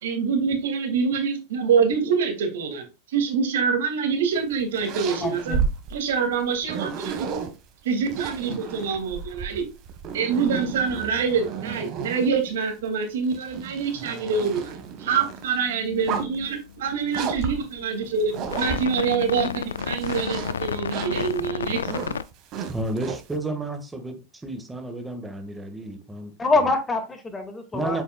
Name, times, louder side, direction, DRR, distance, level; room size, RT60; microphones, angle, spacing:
voice 1, 0.0-5.6 5.9-7.4 7.8-9.6 10.1-21.9, right 5 dB, 75° right, 2.6 m, -25 dB
sound 1, 4.4-7.5 8.1-12.5 13.1-15.4 15.9-16.5 17.1-19.3 19.7-23.3, right 7 dB, 45° right, 1.8 m, -33 dB
voice 2, 5.1-5.6 26.4-28.0, left 3 dB, 20° left, 2.2 m, -25 dB
sound 2, 14.4-14.8 15.2-22.2, left 7 dB, 85° left, 0.4 m, -33 dB
voice 3, 22.7-26.3 27.7-28.0, right 2 dB, 10° right, 1.9 m, -31 dB
8.3 x 6.9 x 2.4 m
hypercardioid pair, 100°, 0 cm